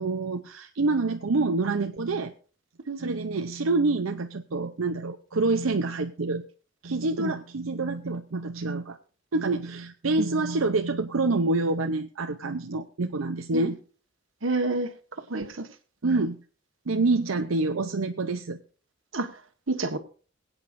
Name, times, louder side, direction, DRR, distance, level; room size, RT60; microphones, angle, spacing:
voice 1, 0.0-2.3 3.0-6.4 6.8-9.0 9.3-13.8 16.0-16.4 16.9-18.6, right 3 dB, 90° right, 0.7 m, -27 dB
voice 2, 2.9-3.2 7.2-7.3 10.2-10.3 13.5-13.7 14.4-14.9 15.3-15.7 19.1-19.3 19.7-20.0, right 2 dB, 75° right, 1.5 m, -28 dB
22.5 x 8.8 x 2.6 m
head